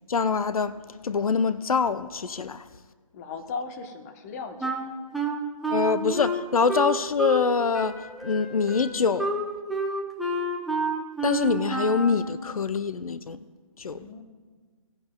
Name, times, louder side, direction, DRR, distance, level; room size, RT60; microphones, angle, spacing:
voice 1, 0.1-0.8 1.0-2.6 5.7-8.0 8.2-9.3 11.2-13.4 13.8-14.0, left 5 dB, 80° left, 0.5 m, -24 dB
voice 2, 3.1-4.9 13.8-14.2, left 4 dB, 25° left, 0.9 m, -37 dB
Wind instrument woodwind instrument, 4.6-7.5 7.7-12.2, right 2 dB, ahead, 0.4 m, -29 dB
17.0 x 10.5 x 2.2 m
figure-of-eight pair, 145°, 18 cm